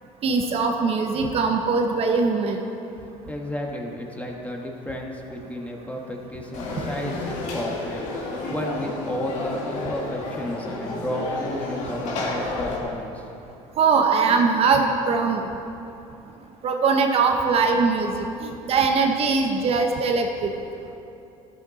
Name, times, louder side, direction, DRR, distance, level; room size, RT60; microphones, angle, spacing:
voice 1, 0.2-2.6 13.8-15.5 16.6-20.5, right 4 dB, 45° right, 3 dB, 1.1 m, -21 dB
voice 2, 3.3-13.3, equal, 10° left, 1 dB, 1.5 m, -32 dB
Conversation / Crowd, 6.5-12.8, left 2 dB, 65° left, 2.4 m, -31 dB
13.0 x 12.0 x 4.2 m, 2.9 s
cardioid pair, 115°, 14 cm